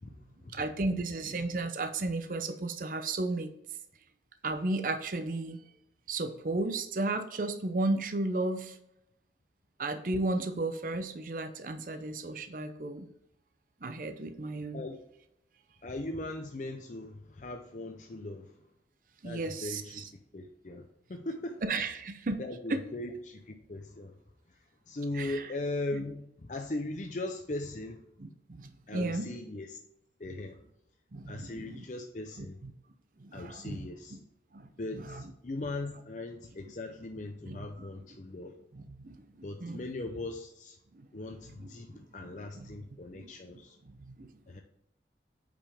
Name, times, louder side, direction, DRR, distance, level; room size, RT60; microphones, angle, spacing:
voice 1, 0.0-0.6 14.7-15.0 15.8-18.7 19.2-20.1 20.3-21.7 22.4-24.2 24.5-24.6 24.9-28.0 28.9-29.8 30.2-30.6 31.3-32.6 33.3-34.2 34.8-38.5 39.4-40.8 41.1-43.8 44.5-44.6, left 2 dB, 45° left, 4 dB, 0.6 m, -39 dB
voice 2, 0.5-3.5 4.4-5.6 6.1-8.8 9.8-13.1 13.8-14.8 19.2-20.0 21.6-22.4 22.7-22.8 25.2-25.4 28.2-29.3 31.1-31.8 32.4-32.5 33.2-33.8 34.1-34.2 34.5-34.7 37.5-37.6 39.0-39.2 39.6-39.8 42.6-42.7 43.1-43.3 44.1-44.3, right 2 dB, 50° right, 8 dB, 0.6 m, -33 dB
8.8 x 5.1 x 3.5 m, 0.80 s
head